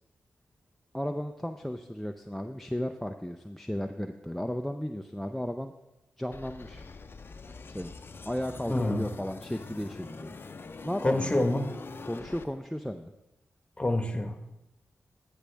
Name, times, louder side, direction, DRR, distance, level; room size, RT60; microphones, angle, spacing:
voice 1, 0.9-5.7 6.2-6.8 7.7-7.9 8.3-10.3 10.8-11.5 12.1-13.1, equal, 5° left, 6 dB, 0.5 m, -34 dB
sound 1, 6.3-12.4, left 4 dB, 50° left, 0.6 m, -44 dB
voice 2, 8.7-9.1 11.0-11.7 13.8-14.5, left 1 dB, 20° left, 6 dB, 1.3 m, -27 dB
13.5 x 6.3 x 3.4 m, 0.95 s
cardioid pair, 45°, 5 cm